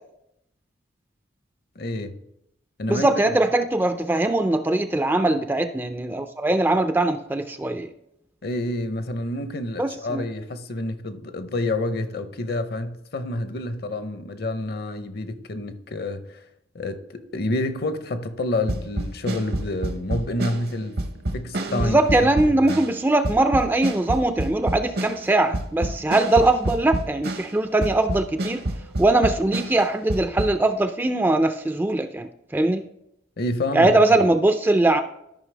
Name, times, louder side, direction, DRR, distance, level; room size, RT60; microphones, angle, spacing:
voice 1, 1.8-2.1 2.8-3.1 8.4-16.4 16.7-21.0 21.3-22.7 33.4-34.2, left 1 dB, 55° left, 0.7 m, -28 dB
voice 2, 2.9-7.9 9.8-10.3 21.7-28.6 29.0-32.8 33.7-35.0, right 2 dB, 10° right, 0.3 m, -21 dB
sound 1, 18.7-27.6 27.8-30.5, right 1 dB, 55° right, 0.8 m, -28 dB
13.0 x 5.5 x 3.3 m
head